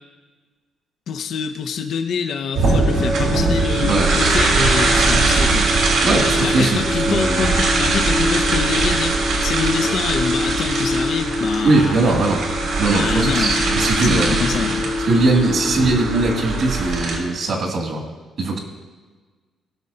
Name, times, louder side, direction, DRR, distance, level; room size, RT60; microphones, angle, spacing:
voice 1, 1.1-5.7 6.4-12.0 12.9-14.9, left 6 dB, 65° left, 5 dB, 0.7 m, -26 dB
sound 1, 2.5-17.2, right 2 dB, 85° right, 2.9 m, -20 dB
voice 2, 6.0-7.5 11.6-12.4 12.8-14.3 15.1-18.0 18.4-18.6, right 2 dB, 65° right, -1 dB, 2.3 m, -20 dB
18.5 x 6.4 x 2.8 m, 1.4 s
cardioid pair, 90°, 0 cm